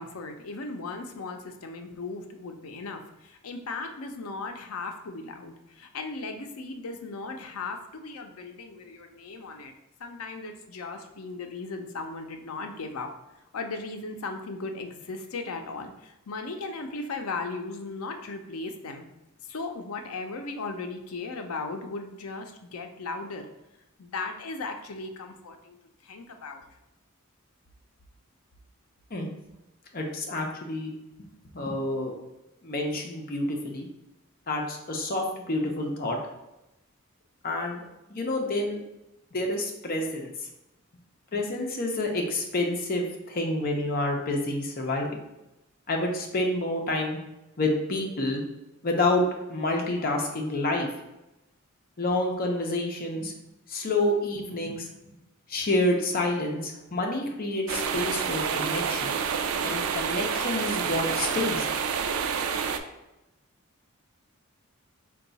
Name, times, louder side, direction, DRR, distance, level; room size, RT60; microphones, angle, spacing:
voice 1, 0.0-9.7 10.0-13.1 13.5-19.1 19.4-23.5 24.0-25.8 26.0-26.7, left 3 dB, 85° left, 5 dB, 0.5 m, -37 dB
voice 2, 29.9-30.9 31.5-32.1 32.6-33.9 34.5-36.2 37.4-37.8 38.1-38.8 39.3-40.3 41.3-45.1 45.9-47.2 47.6-48.4 48.8-49.2 49.5-50.9 52.0-53.3 53.7-54.9 55.5-59.2 59.6-61.7, left 2 dB, 45° left, 1 dB, 0.7 m, -28 dB
sound 1, 57.7-62.8, right 6 dB, 75° right, 0.4 m, -28 dB
4.5 x 2.3 x 4.0 m, 0.95 s
head